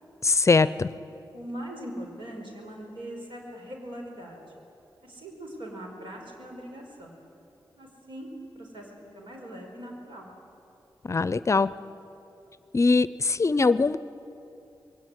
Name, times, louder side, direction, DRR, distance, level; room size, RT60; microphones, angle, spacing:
voice 1, 0.2-0.9 11.1-11.7 12.7-14.0, left 4 dB, 35° left, 16 dB, 0.5 m, -21 dB
voice 2, 1.3-4.4 5.0-7.2 7.8-10.3, right 1 dB, 85° right, 0 dB, 5.3 m, -41 dB
21.5 x 18.5 x 9.4 m, 2.8 s
wide cardioid pair, 100°, 8 cm